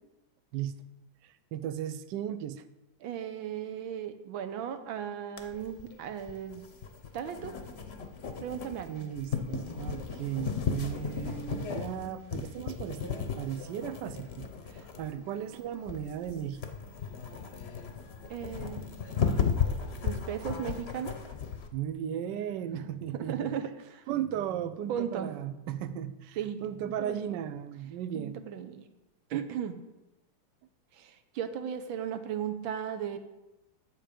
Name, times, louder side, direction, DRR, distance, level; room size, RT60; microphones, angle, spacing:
voice 1, 1.2-2.6 8.9-16.7 21.7-23.6 24.1-28.4, right 10 dB, 70° right, 12 dB, 1.2 m, -36 dB
voice 2, 3.0-6.7 7.1-7.5 8.4-9.1 18.3-19.0 20.0-21.1 22.8-24.1 24.9-25.4 26.4-26.6 27.0-27.3 28.1-28.9 29.3-29.8 30.9-33.2, right 9 dB, 90° right, 9 dB, 1.6 m, -36 dB
sound 1, 5.4-21.7, left 6 dB, 50° left, 0.8 m, -35 dB
10.0 x 7.5 x 5.1 m, 0.97 s
omnidirectional pair, 2.1 m